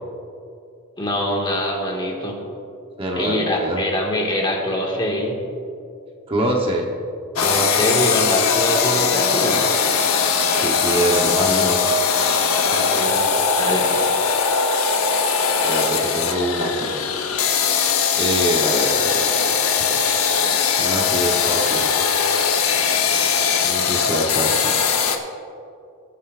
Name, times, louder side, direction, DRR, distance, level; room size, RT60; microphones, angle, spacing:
voice 1, 1.0-2.4 3.2-5.4 7.4-9.6 12.7-13.3 13.6-14.1, equal, 20° left, -1 dB, 1.7 m, -24 dB
voice 2, 3.0-3.8 6.3-6.9 10.5-11.8 15.6-16.9 18.1-19.6 20.4-21.9 23.6-24.7, right 1 dB, 25° right, -1 dB, 0.9 m, -24 dB
sound 1, 7.4-25.2, left 6 dB, 85° left, 0.9 m, -20 dB
20.5 x 9.2 x 2.5 m, 2.5 s
head